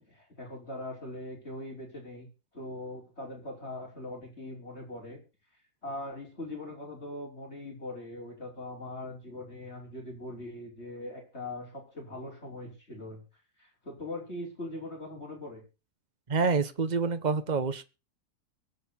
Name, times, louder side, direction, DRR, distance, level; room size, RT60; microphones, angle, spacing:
voice 1, 0.1-2.3 2.5-5.2 5.8-13.2 13.6-15.6, left 1 dB, 40° left, -1 dB, 6.0 m, -41 dB
voice 2, 16.3-17.8, right 4 dB, 30° right, 12 dB, 1.2 m, -27 dB
23.0 x 8.1 x 4.3 m, 0.32 s
omnidirectional pair, 1.7 m